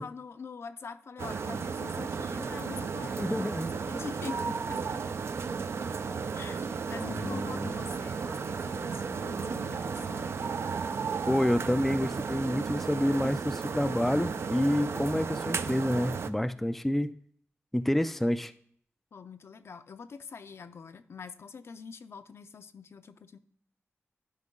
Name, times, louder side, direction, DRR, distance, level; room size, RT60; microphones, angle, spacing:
voice 1, 0.0-3.5 3.9-5.0 6.3-10.5 19.1-23.4, left 5 dB, 65° left, 10 dB, 0.5 m, -44 dB
sound 1, 1.2-16.3, right 5 dB, 65° right, 0.4 m, -34 dB
voice 2, 3.2-3.7 6.9-7.7 11.3-17.2 17.7-18.5, left 1 dB, 5° left, 11 dB, 0.3 m, -28 dB
11.5 x 5.3 x 3.7 m, 0.63 s
wide cardioid pair, 130°, 5 cm